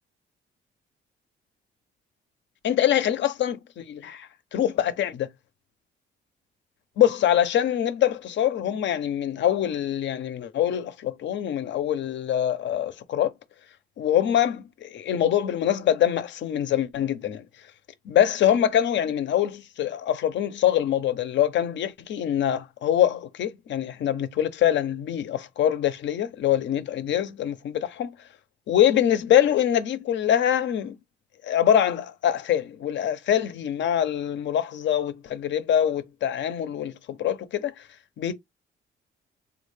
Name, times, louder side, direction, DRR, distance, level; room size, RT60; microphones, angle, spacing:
voice 1, 2.6-5.3 7.0-13.3 14.0-17.4 18.1-28.1 28.7-31.0 31.4-37.7 38.2-38.3, left 10 dB, 65° left, 0.6 m, -24 dB
3.5 x 2.4 x 3.2 m
cardioid pair, 90°, 20 cm